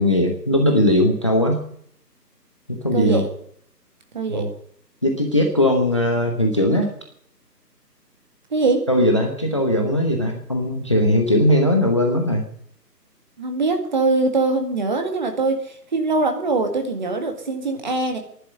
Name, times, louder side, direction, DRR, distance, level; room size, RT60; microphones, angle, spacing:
voice 1, 0.0-1.6 2.7-3.2 4.3-4.5 5.0-6.9 8.9-12.4, left 1 dB, 20° left, 3 dB, 0.9 m, -19 dB
voice 2, 2.9-3.3 4.1-4.5 8.5-8.9 13.4-18.2, right 3 dB, 25° right, 5 dB, 2.0 m, -22 dB
11.5 x 11.0 x 8.7 m, 0.64 s
figure-of-eight pair, 160°, 49 cm